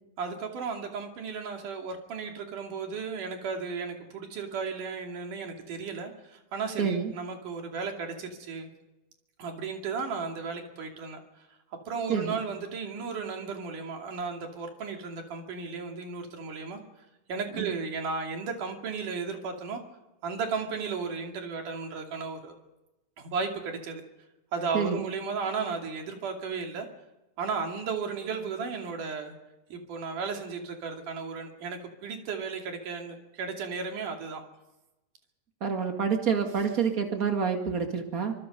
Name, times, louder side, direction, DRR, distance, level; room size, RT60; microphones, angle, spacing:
voice 1, 0.2-8.7 9.4-11.2 11.9-16.8 17.3-19.8 20.2-22.5 23.2-24.0 24.5-26.9 27.4-29.3 29.7-34.4, right 5 dB, 65° right, 3 dB, 4.1 m, -34 dB
voice 2, 6.8-7.1 12.1-12.4 17.6-17.7 24.7-25.0 35.6-38.3, right 6 dB, 30° right, 4 dB, 2.0 m, -28 dB
24.5 x 24.5 x 5.4 m, 1.0 s
omnidirectional pair, 4.0 m